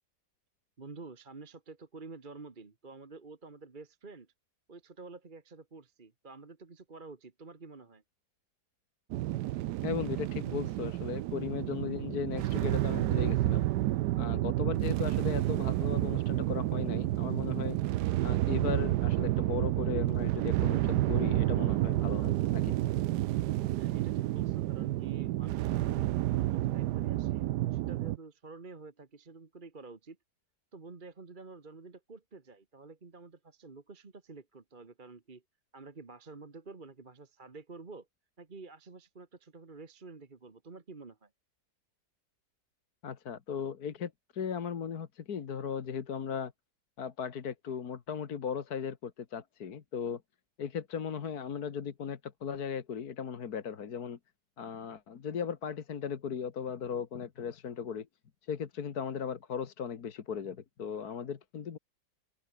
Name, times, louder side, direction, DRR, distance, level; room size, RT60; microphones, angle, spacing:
voice 1, 0.8-4.3 4.7-8.0 23.8-30.2 30.7-35.4 35.7-38.1 38.4-41.3, right 3 dB, 30° right, 1.6 m, -49 dB
sound 1, 9.1-28.2, right 15 dB, 80° right, 1.2 m, -30 dB
voice 2, 9.8-13.7 14.2-17.8 18.2-22.8 43.0-46.5 47.0-50.2 50.6-54.2 54.6-58.1 58.4-61.8, left 7 dB, 65° left, 1.9 m, -37 dB
open air
omnidirectional pair, 1.7 m